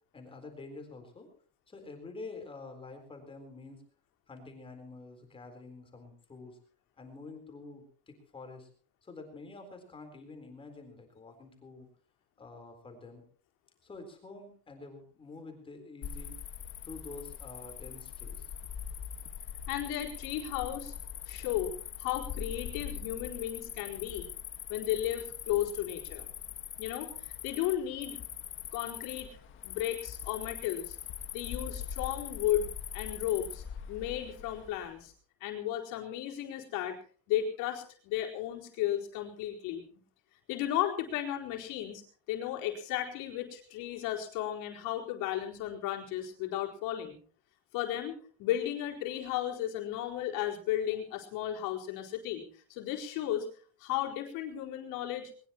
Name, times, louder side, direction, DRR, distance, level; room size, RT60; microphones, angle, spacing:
voice 1, 0.1-1.3 1.7-3.8 4.3-6.6 7.0-8.7 9.0-11.9 12.4-13.2 13.8-16.4 16.8-18.5, left 3 dB, 15° left, 4 dB, 4.0 m, -48 dB
Cricket, 16.0-34.9, left 8 dB, 35° left, 1.7 m, -42 dB
voice 2, 19.7-20.9 21.3-24.3 24.7-26.3 26.8-28.2 28.7-29.4 29.6-31.0 31.3-35.1 35.4-37.0 37.3-39.8 40.5-42.0 42.3-47.2 47.7-53.5 53.8-55.3, left 12 dB, 85° left, 0 dB, 4.4 m, -34 dB
21.5 x 20.5 x 3.0 m, 0.43 s
cardioid pair, 175°, 32 cm